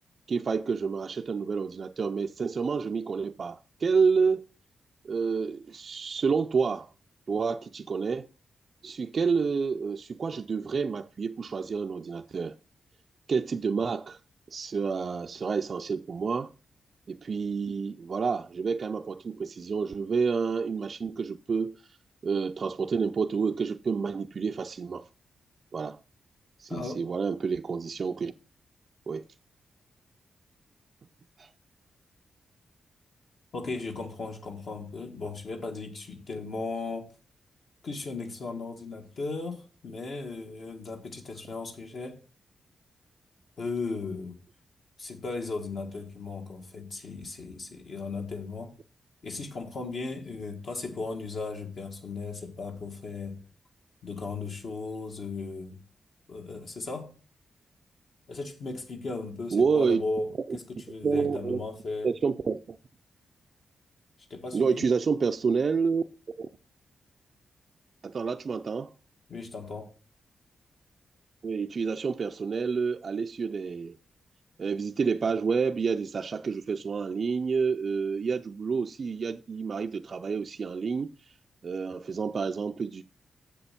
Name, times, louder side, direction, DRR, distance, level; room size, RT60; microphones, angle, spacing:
voice 1, 0.3-4.4 5.0-6.9 7.3-8.3 8.8-12.6 13.3-14.2 14.5-16.5 17.1-21.8 22.2-25.1 25.7-26.0 26.6-28.3 29.1-29.2 31.4-31.5 59.5-60.0 61.0-61.6 62.0-62.8 64.5-66.0 66.4-66.5 68.0-68.9 71.4-74.0 74.6-81.1 81.6-83.0, right 5 dB, 45° right, 0.4 m, -29 dB
voice 2, 26.7-27.0 33.5-37.1 37.8-42.2 43.6-44.4 45.0-48.7 49.2-53.4 54.0-55.8 56.3-57.1 58.3-62.1 64.3-64.9 69.3-69.9, left 3 dB, 60° left, 1.5 m, -36 dB
7.5 x 6.7 x 5.7 m
wide cardioid pair, 125°, 0 cm